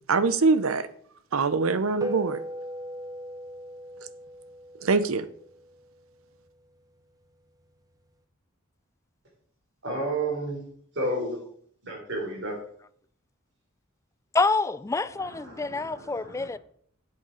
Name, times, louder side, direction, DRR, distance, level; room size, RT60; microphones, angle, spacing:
voice 1, 0.1-0.8 1.3-2.4 4.8-5.2, right 4 dB, 80° right, 0.7 m, -23 dB
sound 1, 2.0-6.7, equal, 15° right, 0.8 m, -39 dB
voice 2, 9.8-10.6 10.9-11.4 11.8-12.5 15.2-16.5, right 2 dB, 60° right, 4.2 m, -31 dB
voice 3, 14.3-16.6, left 3 dB, 15° left, 0.3 m, -27 dB
8.2 x 8.0 x 5.0 m
head